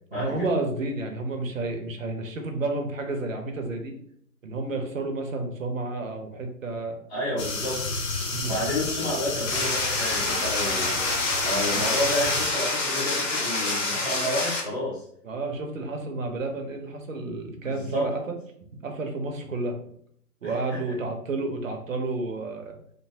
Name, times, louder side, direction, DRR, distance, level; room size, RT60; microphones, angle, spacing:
voice 1, 0.1-4.0 4.4-7.0 8.3-8.5 15.2-18.4 18.7-19.8 20.4-22.7, right 2 dB, 55° right, 4 dB, 0.6 m, -31 dB
voice 2, 7.1-8.0 8.4-11.0 11.4-15.0 17.6-18.1 20.4-20.8, left 1 dB, 5° left, -15 dB, 0.8 m, -30 dB
sound 1, 7.4-12.5, left 3 dB, 80° left, 0.7 m, -31 dB
sound 2, 9.5-14.6, left 2 dB, 50° left, 0.8 m, -27 dB
2.7 x 2.2 x 2.7 m, 0.66 s
figure-of-eight pair, 135°, 48 cm